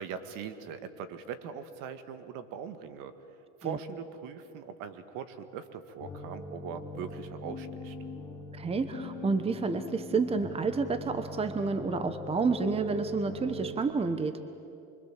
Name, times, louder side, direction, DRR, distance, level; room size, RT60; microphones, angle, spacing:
voice 1, 0.0-3.1 3.6-8.0, right 7 dB, 55° right, 10 dB, 1.9 m, -41 dB
sound 1, 6.0-13.7, left 1 dB, 10° left, 3.1 m, -41 dB
voice 2, 8.5-14.4, right 4 dB, 15° right, 11 dB, 1.1 m, -30 dB
26.0 x 23.5 x 7.6 m, 2.6 s
supercardioid pair, 120°, 37 cm